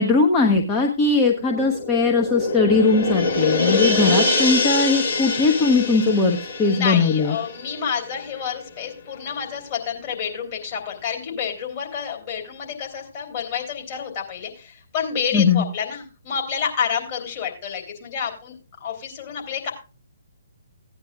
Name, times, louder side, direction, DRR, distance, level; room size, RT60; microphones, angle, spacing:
voice 1, 0.0-7.4 15.3-15.6, left 4 dB, 15° left, 0 dB, 1.0 m, -19 dB
sound 1, 1.2-8.2 8.5-8.6, left 3 dB, 55° left, 2.9 m, -24 dB
voice 2, 6.6-18.5 18.8-19.7, left 7 dB, 35° left, -1 dB, 3.3 m, -29 dB
16.5 x 9.4 x 2.4 m, 0.33 s
figure-of-eight pair, 135°, 0 cm